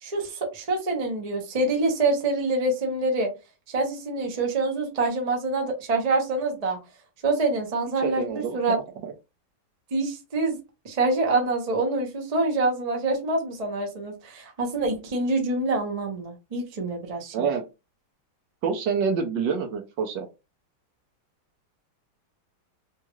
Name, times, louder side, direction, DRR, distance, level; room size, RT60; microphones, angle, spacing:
voice 1, 0.0-3.3 3.7-6.8 7.2-8.8 9.9-10.6 10.8-17.5, right 2 dB, 40° right, 2 dB, 0.5 m, -26 dB
voice 2, 8.0-8.8 17.3-17.6 18.6-20.3, right 6 dB, 70° right, 4 dB, 1.2 m, -27 dB
3.6 x 2.4 x 3.0 m, 0.27 s
omnidirectional pair, 2.2 m